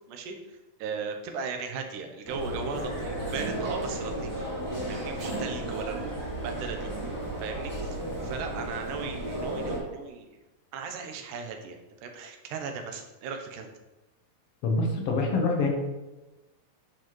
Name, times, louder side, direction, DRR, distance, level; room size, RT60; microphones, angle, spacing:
voice 1, 0.1-4.5 4.9-6.9 7.4-10.4 10.7-13.7, right 5 dB, 85° right, 4 dB, 2.4 m, -37 dB
sound 1, 2.3-9.8, right 1 dB, 10° right, 1.2 m, -34 dB
voice 2, 14.6-15.7, left 3 dB, 65° left, 1 dB, 1.6 m, -25 dB
9.6 x 4.5 x 3.1 m, 1.1 s
omnidirectional pair, 3.6 m